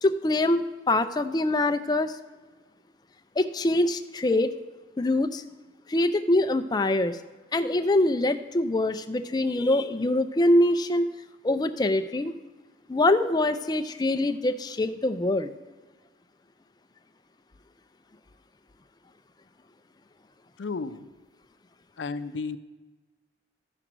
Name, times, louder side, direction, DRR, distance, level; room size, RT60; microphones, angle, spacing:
voice 1, 0.0-2.2 3.4-4.5 5.0-5.4 5.9-7.2 7.5-11.1 11.4-12.3 12.9-15.5, left 1 dB, 20° left, 9 dB, 0.4 m, -24 dB
voice 2, 20.6-21.1 22.0-22.6, left 4 dB, 75° left, 13 dB, 0.5 m, -33 dB
14.5 x 5.0 x 6.1 m, 1.3 s
head